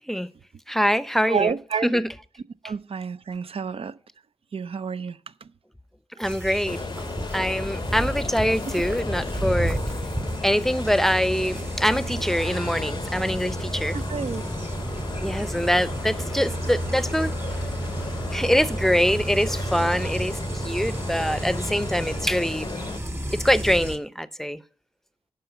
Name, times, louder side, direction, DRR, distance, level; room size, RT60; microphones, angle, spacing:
voice 1, 0.7-1.6 1.8-2.1 6.2-6.8 7.3-9.8 10.4-14.0 15.2-17.3 18.3-22.7 23.3-24.6, equal, 5° left, 0.7 m, -24 dB
voice 2, 1.3-2.0 2.6-3.9 4.5-5.2 6.5-6.6 13.9-14.4, right 6 dB, 65° right, 0.6 m, -29 dB
sound 1, 6.2-24.0, right 1 dB, 25° right, 2.0 m, -31 dB
sound 2, 6.7-23.0, left 4 dB, 45° left, 0.5 m, -35 dB
11.0 x 5.0 x 6.9 m
cardioid pair, 60°, 11 cm